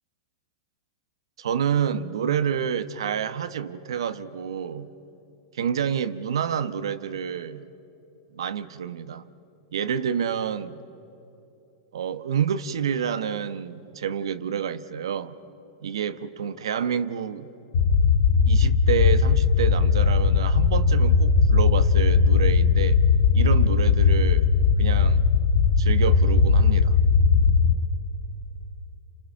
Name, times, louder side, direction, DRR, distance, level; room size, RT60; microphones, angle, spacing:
voice 1, 1.4-4.9 5.5-7.6 8.3-9.3 9.7-10.8 11.9-15.3 15.8-17.5 18.5-23.0 23.3-24.5 24.8-25.3 25.8-27.0, right 8 dB, 85° right, 1.1 m, -28 dB
sound 1, 17.7-27.7, left 5 dB, 75° left, 1.3 m, -19 dB
30.0 x 29.0 x 6.0 m
hypercardioid pair, 130°, 3 cm